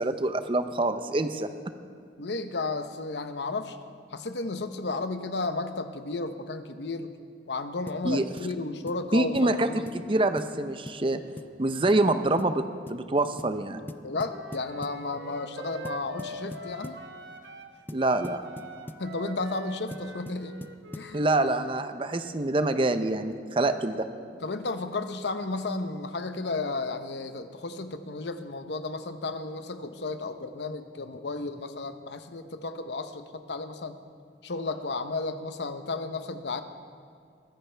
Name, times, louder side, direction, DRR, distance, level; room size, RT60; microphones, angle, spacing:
voice 1, 0.0-1.5 8.0-8.2 9.1-11.2 11.6-12.6 12.9-13.8 17.9-18.4 21.1-24.0, right 2 dB, 30° right, 9 dB, 0.6 m, -26 dB
voice 2, 2.2-3.8 4.1-7.1 7.5-9.9 14.0-17.0 19.0-20.6 20.9-21.2 24.4-34.0 34.4-36.6, left 3 dB, 75° left, 9 dB, 0.9 m, -33 dB
sound 1, 7.9-8.1 8.4-8.5 8.9-9.1 9.3-9.5 9.9-10.1 10.4-10.5 10.9-11.0 11.4-11.6 11.9-12.1 12.4-12.6 12.9-13.0 13.4-13.6 13.9-15.0 15.8-17.0 17.9-19.1 19.9-21.2, left 1 dB, 10° left, 0.4 m, -42 dB
Wind instrument woodwind instrument, 14.2-17.7 18.0-21.8, right 2 dB, 80° right, 1.2 m, -44 dB
22.5 x 14.5 x 3.4 m, 2.4 s
head